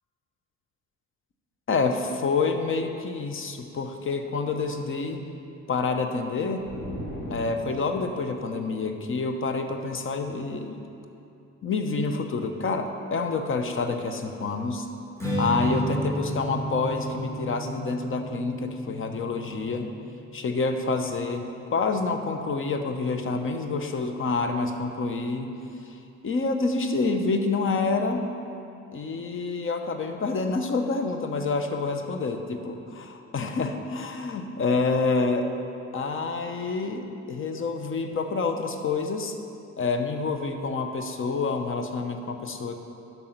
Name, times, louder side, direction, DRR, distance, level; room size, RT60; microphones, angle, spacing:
voice 1, 1.7-5.3 5.7-6.7 7.3-10.8 11.6-14.9 15.4-19.9 20.3-25.5 25.9-26.0 26.2-28.2 28.9-35.5 35.9-39.4 39.8-42.8, left 4 dB, 45° left, 6 dB, 0.8 m, -28 dB
sound 1, 6.6-8.2, equal, 70° left, 2.2 m, -37 dB
Strum, 15.2-21.5, equal, 10° left, 1.9 m, -33 dB
8.6 x 5.5 x 5.8 m, 2.7 s
cardioid pair, 90°, 30 cm